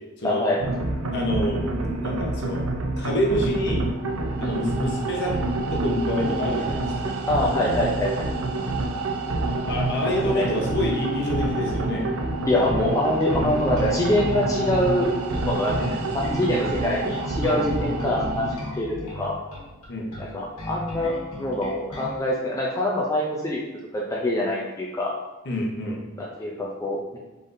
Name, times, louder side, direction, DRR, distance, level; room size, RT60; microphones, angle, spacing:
voice 1, 0.2-0.6 4.4-4.6 7.3-8.3 10.3-10.5 12.4-15.1 15.4-18.5 18.8-19.3 20.2-23.6 23.9-25.1 26.2-27.2, left 1 dB, 15° left, -4 dB, 0.4 m, -25 dB
sound 1, 0.6-18.5, right 2 dB, 80° right, 0.5 m, -27 dB
voice 2, 1.1-1.6 2.0-2.6 3.0-3.8 4.4-5.3 5.7-7.1 9.5-12.1 15.8-16.0 17.8-17.9 19.9-20.1 25.4-26.0, left 1 dB, 50° left, -1 dB, 0.8 m, -27 dB
Bass guitar, 12.6-22.2, left 1 dB, 85° left, 1.3 m, -37 dB
3.9 x 3.6 x 2.6 m, 1.1 s
head